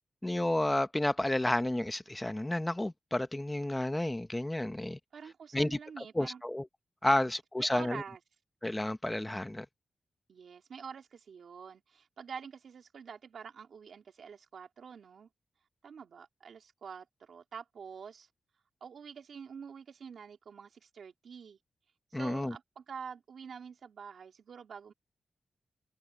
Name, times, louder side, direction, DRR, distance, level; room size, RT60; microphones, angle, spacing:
voice 1, 0.2-5.0 5.5-5.8 6.1-6.7 7.0-8.0 8.6-9.7 22.1-22.5, left 1 dB, 10° left, 0.8 m, -31 dB
voice 2, 5.1-6.4 7.1-7.3 7.6-8.2 10.3-15.3 15.8-18.3 18.8-21.6 22.1-24.9, right 6 dB, 75° right, 3.2 m, -47 dB
wide cardioid pair, 140°, 0 cm